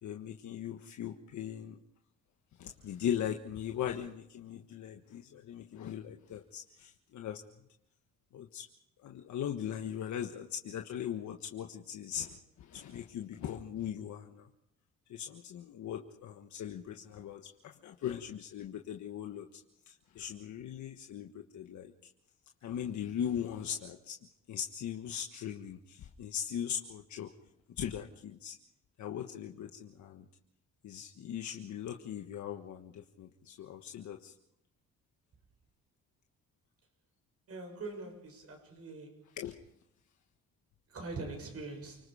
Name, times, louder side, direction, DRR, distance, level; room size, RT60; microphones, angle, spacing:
voice 1, 0.0-1.8 2.6-7.4 8.3-8.6 9.0-12.4 12.7-14.4 15.1-19.5 20.1-21.9 22.6-24.1 24.5-27.3 27.8-28.5 29.0-30.2 30.8-34.3 39.4-39.5, left 9 dB, 70° left, 1.5 m, -39 dB
voice 2, 37.5-39.1 40.9-42.0, right 3 dB, 50° right, 7.0 m, -42 dB
29.5 x 19.5 x 5.0 m
cardioid pair, 90°, 30 cm